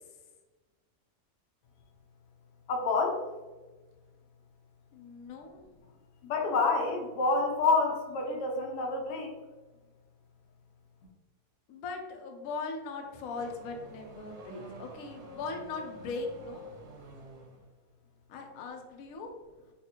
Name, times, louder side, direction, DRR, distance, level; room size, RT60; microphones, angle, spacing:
voice 1, 2.7-3.2 6.2-9.3, left 3 dB, 85° left, 1 dB, 1.3 m, -28 dB
voice 2, 4.9-5.6 11.7-16.6 18.3-19.3, left 4 dB, 70° left, 3 dB, 0.9 m, -39 dB
Car / Accelerating revving vroom, 12.7-17.7, equal, 90° right, 1.3 m, -49 dB
4.2 x 2.4 x 2.7 m, 1.2 s
omnidirectional pair, 1.7 m